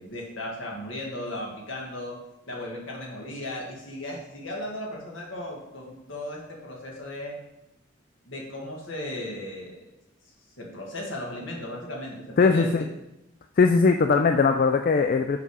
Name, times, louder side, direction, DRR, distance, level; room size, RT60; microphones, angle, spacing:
voice 1, 0.0-2.2 2.5-7.4 8.3-9.8 10.6-12.9, left 1 dB, 70° left, -2 dB, 1.8 m, -36 dB
voice 2, 12.4-12.9 13.6-15.4, left 4 dB, 45° left, 6 dB, 0.3 m, -20 dB
5.8 x 5.5 x 4.8 m, 0.91 s
head